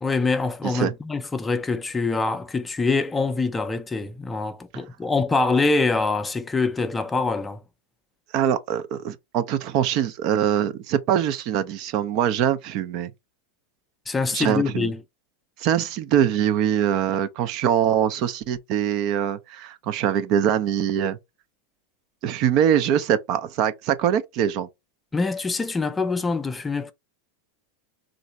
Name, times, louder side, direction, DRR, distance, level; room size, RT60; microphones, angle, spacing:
voice 1, 0.0-7.6 14.1-15.0 25.1-26.9, left 3 dB, 15° left, 0.5 m, -24 dB
voice 2, 8.3-13.1 14.3-14.9 15.6-21.2 22.2-24.7, right 9 dB, 50° right, 0.6 m, -23 dB
3.2 x 2.6 x 4.0 m
hypercardioid pair, 100°, 0 cm